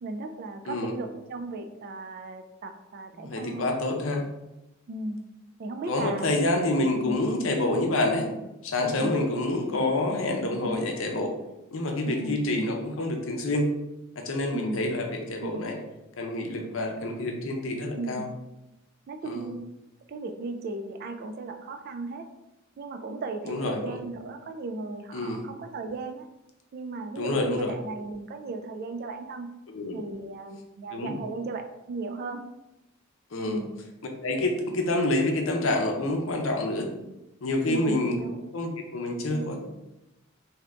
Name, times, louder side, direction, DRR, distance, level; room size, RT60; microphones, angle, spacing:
voice 1, 0.0-3.7 4.9-5.2 5.6-6.3 6.9-7.2 8.8-9.1 10.5-10.7 12.1-12.7 14.5-14.8 15.4-15.6 17.9-18.2 19.1-19.7 20.1-22.3 22.8-26.3 26.7-29.5 29.9-32.5 33.5-33.7 37.7-38.4 39.3-39.5, right 3 dB, 50° right, 6 dB, 0.3 m, -36 dB
voice 2, 3.2-4.3 5.9-8.3 8.6-11.3 11.7-13.7 14.2-15.8 16.2-18.3 19.2-19.5 23.5-24.0 25.1-25.5 27.2-27.7 29.7-30.0 30.9-31.1 33.3-33.6 34.2-36.9 37.4-38.2 38.5-39.6, left 2 dB, 70° left, 2 dB, 0.6 m, -27 dB
2.7 x 2.5 x 3.3 m, 0.95 s
head